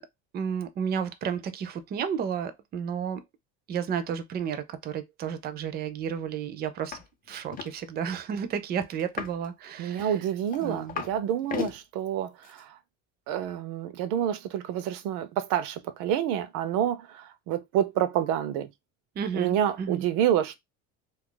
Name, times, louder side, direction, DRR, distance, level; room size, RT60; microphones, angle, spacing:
voice 1, 0.3-3.2 3.7-7.0 7.3-10.2 10.6-11.0 19.2-20.0, right 7 dB, 30° right, 0.4 m, -32 dB
sound 1, 6.9-7.0 7.3-7.7 9.0-9.5 10.0-11.2 11.4-11.8 12.4-12.6, left 8 dB, 25° left, 0.5 m, -35 dB
voice 2, 9.8-12.7 13.3-18.7 19.3-20.6, right 10 dB, 85° right, 0.6 m, -28 dB
2.7 x 2.4 x 3.7 m
cardioid pair, 135°, 31 cm